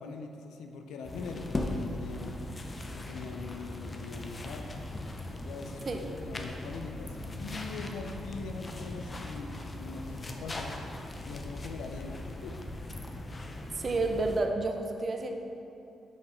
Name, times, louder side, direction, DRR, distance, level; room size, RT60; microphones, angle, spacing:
voice 1, 0.0-2.4 2.9-4.8 5.4-10.8 11.3-12.6, left 4 dB, 85° left, 4 dB, 0.5 m, -42 dB
sound 1, 1.0-14.4, left 1 dB, 35° left, 0.7 m, -39 dB
voice 2, 13.8-15.3, right 3 dB, 45° right, 4 dB, 0.7 m, -30 dB
5.9 x 4.9 x 4.4 m, 2.7 s
supercardioid pair, 65°, 0 cm